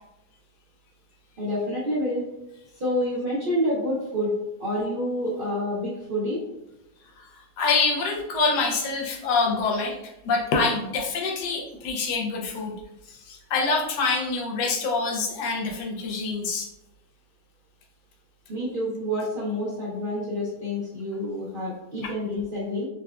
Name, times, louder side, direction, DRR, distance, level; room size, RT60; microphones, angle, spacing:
voice 1, 1.4-2.2 2.8-6.4 18.5-22.9, left 1 dB, 70° right, -7 dB, 0.5 m, -28 dB
voice 2, 7.6-12.7 13.1-16.7 22.0-22.1, left 4 dB, 80° left, 1 dB, 1.2 m, -26 dB
3.8 x 2.2 x 2.3 m, 0.90 s
omnidirectional pair, 1.7 m